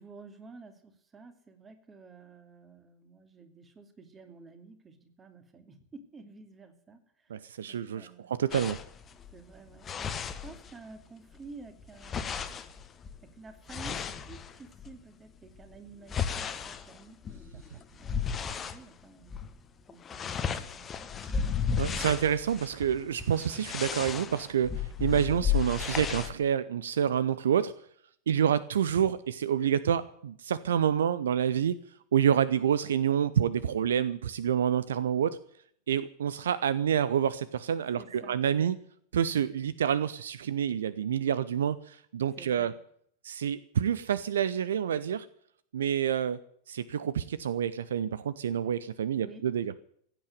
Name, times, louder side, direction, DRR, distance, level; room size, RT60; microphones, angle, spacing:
voice 1, 0.0-8.3 9.3-12.5 13.2-19.4 19.9-21.6 22.0-22.1 38.0-38.7 42.4-42.8 49.1-49.4, right 4 dB, 20° right, 7 dB, 2.6 m, -51 dB
voice 2, 7.3-8.8 21.8-24.7 25.0-27.7 28.3-31.7 32.1-35.4 35.9-38.8 39.1-42.7 43.2-45.3 45.7-46.4 46.7-49.7, right 9 dB, 65° right, 17 dB, 0.6 m, -28 dB
sound 1, 8.5-11.0 11.3-15.0 15.5-18.8 19.2-19.5 19.8-26.3, left 7 dB, 25° left, 1.3 m, -34 dB
16.0 x 9.2 x 9.3 m, 0.65 s
figure-of-eight pair, 90°, 0 cm